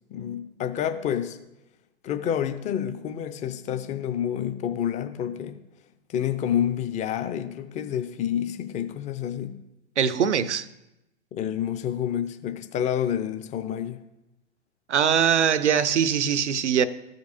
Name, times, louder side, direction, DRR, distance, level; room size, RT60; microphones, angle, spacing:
voice 1, 0.1-1.4 2.0-5.6 6.1-9.6 11.3-14.0, left 9 dB, 20° left, 0.5 m, -28 dB
voice 2, 10.0-10.7 14.9-16.9, right 8 dB, 90° right, 0.5 m, -22 dB
14.0 x 5.2 x 2.7 m
hypercardioid pair, 105°, 34 cm